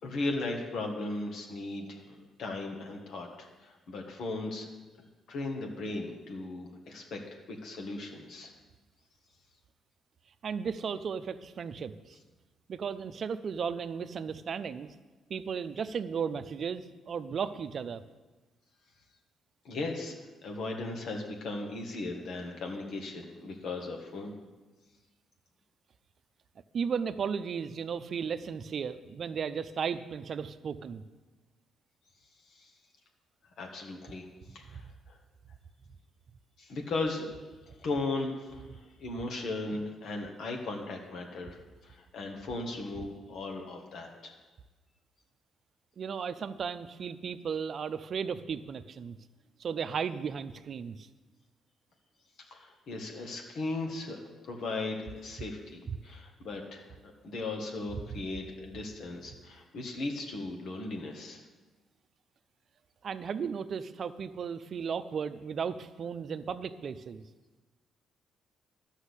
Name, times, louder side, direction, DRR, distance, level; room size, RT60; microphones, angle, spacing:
voice 1, 0.0-4.7 5.0-8.5 19.6-20.1 20.4-24.3 32.4-32.7 33.6-35.2 36.6-37.3 37.6-41.6 41.8-44.4 52.4-61.4, left 2 dB, 70° left, 2 dB, 1.7 m, -37 dB
voice 2, 10.4-12.2 12.7-14.9 15.3-18.0 26.7-31.0 34.7-34.8 46.0-49.2 49.6-51.1 55.9-56.0 58.1-58.2 63.0-67.2, right 6 dB, 55° right, 12 dB, 0.6 m, -35 dB
11.5 x 6.3 x 8.2 m, 1.2 s
cardioid pair, 90°, 0 cm